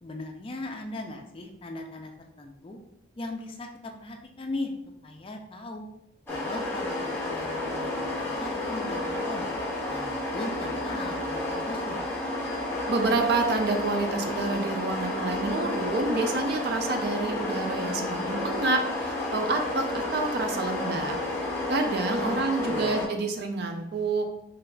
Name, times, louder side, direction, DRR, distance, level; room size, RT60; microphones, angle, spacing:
voice 1, 0.0-2.1 2.4-2.8 3.2-4.7 5.0-5.9 6.3-9.5 9.9-12.0 22.2-22.3 22.7-22.9, left 2 dB, 25° left, 3 dB, 0.3 m, -38 dB
sound 1, 6.3-23.1, left 2 dB, 10° left, 0.7 m, -31 dB
voice 2, 12.9-21.2 21.7-24.3, right 3 dB, 55° right, 5 dB, 0.4 m, -28 dB
3.9 x 3.2 x 2.2 m, 0.82 s
head